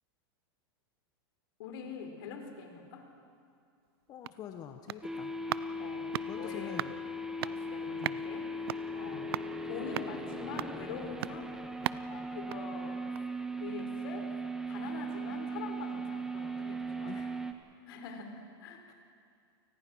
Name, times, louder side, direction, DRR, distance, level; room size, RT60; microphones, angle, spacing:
voice 1, 1.6-3.1 5.8-6.8 7.4-8.5 8.9-9.3 9.6-11.6 12.1-13.0 13.6-14.3 14.7-17.1 17.9-18.3 18.6-18.8, left 5 dB, 70° left, 5 dB, 4.0 m, -44 dB
sound 1, 3.9-13.4 13.8-13.9, right 13 dB, 85° right, 0.5 m, -41 dB
voice 2, 4.1-5.3 6.3-6.9 8.0-8.2 9.1-9.3 17.0-17.3 18.0-18.9, left 9 dB, 30° left, 6 dB, 1.1 m, -46 dB
sound 2, 5.0-17.5, right 1 dB, 5° right, 1.3 m, -38 dB
29.0 x 19.5 x 6.3 m, 2.4 s
supercardioid pair, 140°, 13 cm